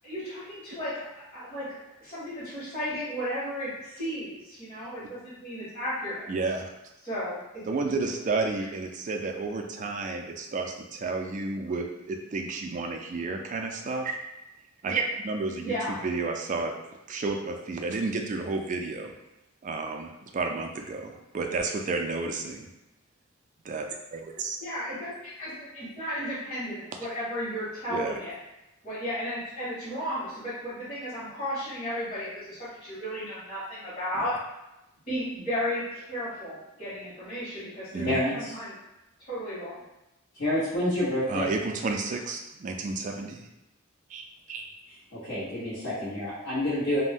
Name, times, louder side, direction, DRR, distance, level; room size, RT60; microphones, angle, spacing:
voice 1, 0.0-6.3 7.0-7.4 15.6-15.9 24.6-25.1 25.4-28.3 28.8-34.3 35.1-38.1 38.3-38.7 39.3-39.8, equal, 35° left, -15 dB, 1.3 m, -34 dB
voice 2, 6.3-6.7 7.7-14.2 14.8-16.7 17.1-19.1 19.6-22.7 23.6-24.6 27.9-28.2 37.9-38.2 41.3-43.5 44.1-44.7, right 3 dB, 35° right, 3 dB, 0.3 m, -31 dB
voice 3, 38.0-38.5 40.3-41.5 45.1-47.0, left 1 dB, 65° left, -14 dB, 1.1 m, -28 dB
2.5 x 2.1 x 3.4 m, 0.94 s
head